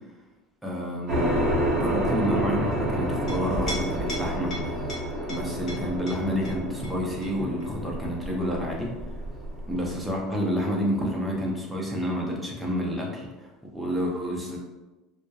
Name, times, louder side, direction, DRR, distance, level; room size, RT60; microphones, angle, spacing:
voice 1, 0.6-1.4 1.8-4.6 5.3-8.9 9.7-13.5 13.7-14.6, equal, 5° right, -3 dB, 0.5 m, -29 dB
sound 1, 1.1-11.2, equal, 40° right, 0.8 m, -30 dB
Chink clink, 3.0-10.1, equal, 35° left, 0.8 m, -38 dB
2.2 x 2.0 x 2.6 m, 1.1 s
cardioid pair, 140°, 0 cm